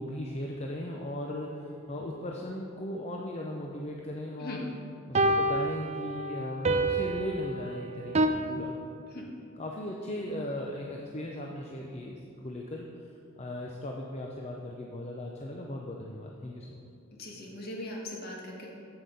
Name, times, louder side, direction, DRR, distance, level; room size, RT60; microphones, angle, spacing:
voice 1, 0.0-4.7 5.1-8.8 9.6-12.8 13.4-16.8, left 1 dB, 30° left, 0 dB, 0.6 m, -37 dB
sound 1, 0.9-1.0 5.1-8.3, right 2 dB, 30° right, 0.5 m, -28 dB
voice 2, 17.2-18.7, left 1 dB, 50° left, -2 dB, 1.7 m, -40 dB
8.0 x 7.8 x 5.3 m, 2.5 s
head